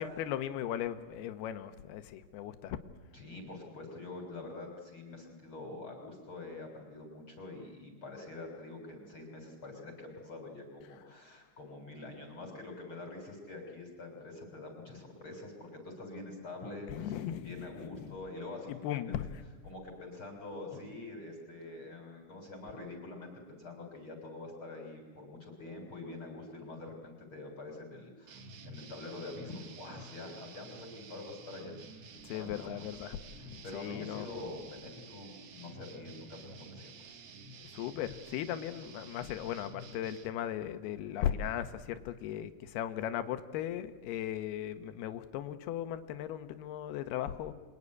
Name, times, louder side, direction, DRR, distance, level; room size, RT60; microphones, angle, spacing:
voice 1, 0.0-2.8 16.9-18.1 18.7-19.4 32.2-33.2 33.5-34.3 37.7-47.5, left 11 dB, 90° left, 10 dB, 3.1 m, -37 dB
voice 2, 3.1-19.2 19.6-31.7 32.0-33.0 33.3-37.2, left 2 dB, 35° left, 3 dB, 3.7 m, -46 dB
sound 1, 28.3-40.3, right 3 dB, 55° right, 2.2 m, -51 dB
29.0 x 21.5 x 9.7 m, 1.5 s
omnidirectional pair, 4.4 m